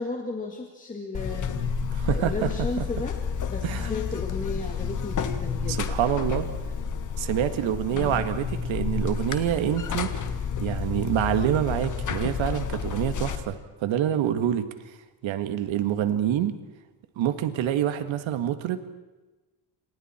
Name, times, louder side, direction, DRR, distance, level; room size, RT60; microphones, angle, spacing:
voice 1, 0.0-1.6 2.1-3.2 3.5-6.0 7.9-8.3, left 3 dB, 15° left, 1 dB, 2.0 m, -34 dB
Buzz, 1.1-13.4, left 6 dB, 40° left, 1.7 m, -30 dB
voice 2, 1.9-2.5 3.6-3.9 5.7-6.5 7.2-10.1 10.6-15.0 15.2-16.5 17.2-18.8, right 10 dB, 75° right, 9 dB, 1.9 m, -26 dB
29.0 x 27.5 x 4.4 m, 1.2 s
cardioid pair, 165°, 47 cm